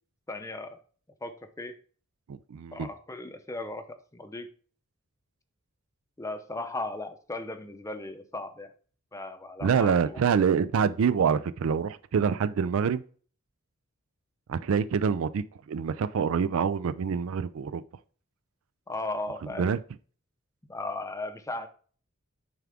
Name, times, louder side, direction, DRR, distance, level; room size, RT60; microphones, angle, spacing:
voice 1, 0.3-0.8 1.2-1.7 2.7-3.9 4.1-4.5 6.2-8.7 9.1-10.2 18.9-19.7 20.7-21.7, left 2 dB, 15° left, 0.6 m, -36 dB
voice 2, 2.3-2.9 9.6-13.0 14.5-17.8 19.6-19.8, right 6 dB, 65° right, 0.4 m, -26 dB
9.3 x 3.6 x 3.5 m
head